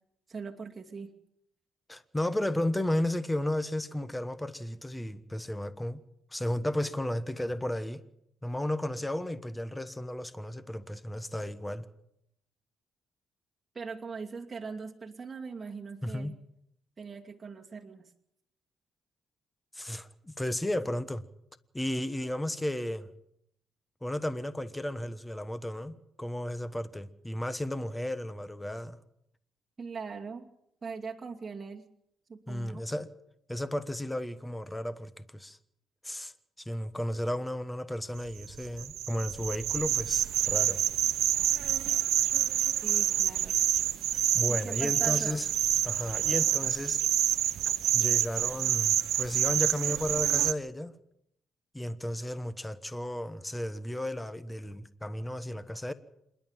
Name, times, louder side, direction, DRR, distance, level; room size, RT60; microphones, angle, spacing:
voice 1, 0.3-1.1 13.7-16.4 17.0-18.0 29.8-30.5 30.8-31.9 32.3-32.8 42.8-43.6 44.5-45.4, right 5 dB, 30° right, 2.6 m, -41 dB
voice 2, 1.9-6.0 6.3-8.0 8.4-11.8 16.0-16.3 19.7-21.3 21.7-23.1 24.0-29.0 32.5-33.1 33.5-35.6 36.0-40.8 44.3-45.5 45.8-47.0 47.9-50.9 51.7-55.9, left 1 dB, 10° left, 1.2 m, -34 dB
sound 1, 38.3-50.5, right 12 dB, 80° right, 0.8 m, -27 dB
27.5 x 11.5 x 9.1 m
cardioid pair, 90°, 0 cm